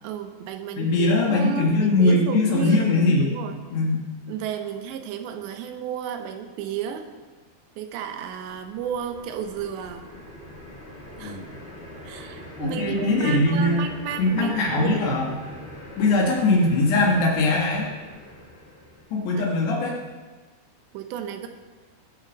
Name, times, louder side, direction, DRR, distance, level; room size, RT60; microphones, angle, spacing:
voice 1, 0.0-3.6 4.3-7.1 7.8-10.0 11.2-11.4 12.0-15.0 16.0-16.2 20.9-21.5, right 8 dB, 85° right, 6 dB, 3.3 m, -33 dB
voice 2, 0.8-3.4 3.7-4.1 11.2-11.5 12.6-13.8 14.2-15.3 16.0-17.9 19.1-20.0, left 2 dB, 75° left, -2 dB, 3.7 m, -21 dB
sound 1, 8.1-19.5, left 1 dB, 25° left, 1.4 m, -43 dB
19.0 x 6.7 x 6.4 m, 1.3 s
omnidirectional pair, 5.0 m